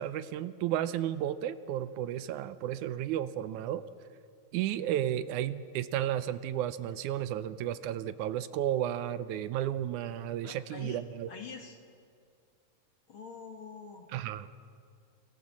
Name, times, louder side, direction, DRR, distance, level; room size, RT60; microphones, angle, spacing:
voice 1, 0.0-3.8 4.5-11.3 14.1-14.5, right 11 dB, 80° right, 14 dB, 2.1 m, -33 dB
voice 2, 10.4-11.0 11.3-11.8 13.1-14.1, left 5 dB, 50° left, 4 dB, 1.9 m, -45 dB
26.5 x 16.5 x 7.4 m, 2.2 s
omnidirectional pair, 3.5 m